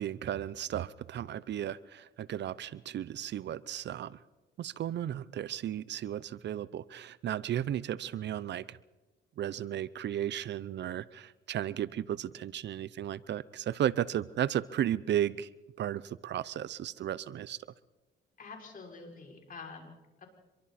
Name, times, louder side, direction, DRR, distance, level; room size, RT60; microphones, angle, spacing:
voice 1, 0.0-4.2 4.6-8.8 9.4-15.5 15.8-17.6, right 11 dB, 60° right, 19 dB, 0.7 m, -34 dB
voice 2, 18.4-20.3, left 4 dB, 45° left, 1 dB, 6.4 m, -47 dB
26.0 x 23.0 x 4.3 m, 1.1 s
cardioid pair, 90°, 20 cm